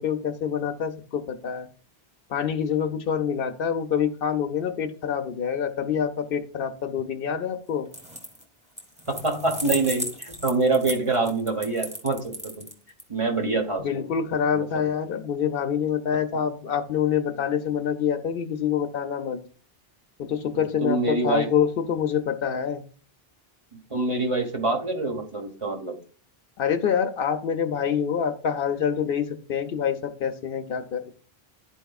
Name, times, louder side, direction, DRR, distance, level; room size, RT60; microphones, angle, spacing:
voice 1, 0.0-1.7 2.3-7.9 13.8-19.4 20.2-22.8 26.6-31.1, left 8 dB, 65° left, 8 dB, 0.8 m, -26 dB
sound 1, 7.9-8.4 8.8-13.0, equal, 5° right, 1.1 m, -35 dB
voice 2, 9.1-12.7 13.1-14.0 14.5-14.8 20.5-21.5 23.9-26.0, right 3 dB, 30° right, 2 dB, 1.2 m, -26 dB
12.0 x 4.5 x 2.3 m, 0.42 s
omnidirectional pair, 1.0 m